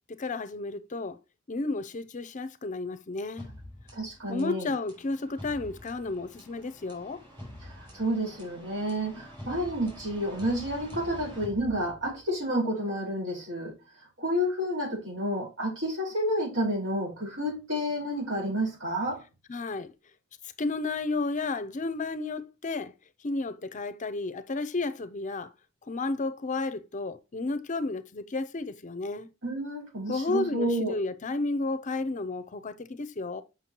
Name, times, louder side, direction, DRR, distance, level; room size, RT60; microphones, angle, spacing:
voice 1, 0.1-1.2 1.5-3.5 4.3-7.2 19.5-19.9 20.6-22.9 23.2-25.5 25.9-29.3 30.1-33.4, left 3 dB, 40° left, 0.6 m, -32 dB
sound 1, 3.4-12.3, left 1 dB, 25° right, 4.8 m, -46 dB
voice 2, 3.9-4.7 7.6-13.7 14.2-19.2 29.4-31.0, equal, 70° right, 4.4 m, -30 dB
7.5 x 5.9 x 2.9 m
head